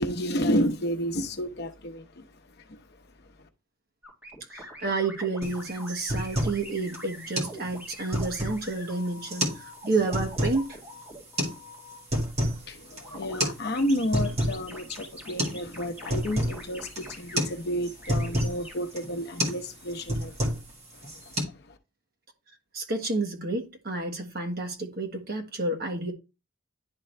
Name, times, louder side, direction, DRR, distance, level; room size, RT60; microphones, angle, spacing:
voice 1, 0.0-2.3 2.6-2.8 12.6-20.4 21.0-21.8, equal, 50° left, 0.8 m, -31 dB
sound 1, 4.0-12.0 13.0-13.4 13.7-17.4 18.0-18.7, equal, 10° right, 2.1 m, -44 dB
voice 2, 4.5-10.8 22.7-26.1, right 3 dB, 45° right, 1.4 m, -30 dB
sound 2, 5.4-5.6 5.9-6.6 6.9-7.0 7.4-7.6 7.9-8.7 9.3-9.6 9.9-10.6 11.4-11.5 11.9-12.6 12.9-13.0 13.4-13.6 13.9-14.6 15.0-15.1 15.4-15.6 15.9-16.6 17.0-17.1 17.4-17.6 17.8-18.6 19.0-19.1 19.4-19.6 19.9-20.7 21.0-21.4, equal, 30° right, 1.8 m, -28 dB
10.5 x 3.8 x 3.3 m
head